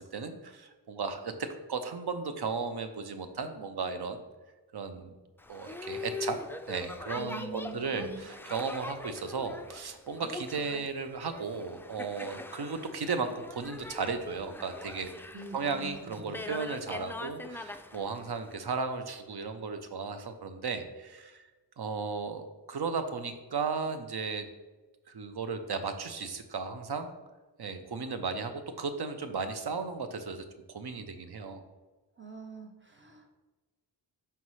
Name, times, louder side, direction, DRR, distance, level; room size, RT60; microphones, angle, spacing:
voice 1, 0.0-4.2 4.7-5.1 5.5-6.4 6.7-15.1 15.5-21.4 21.8-24.5 25.1-27.1 27.6-31.6, right 4 dB, 60° right, 8 dB, 0.8 m, -35 dB
Boat Water vehicle, 5.4-18.5, left 2 dB, 5° left, 0.3 m, -42 dB
voice 2, 7.1-8.3 15.3-16.5 32.2-33.3, right 3 dB, 25° right, 3 dB, 0.9 m, -44 dB
5.7 x 5.5 x 3.1 m, 1.2 s
cardioid pair, 50°, 45 cm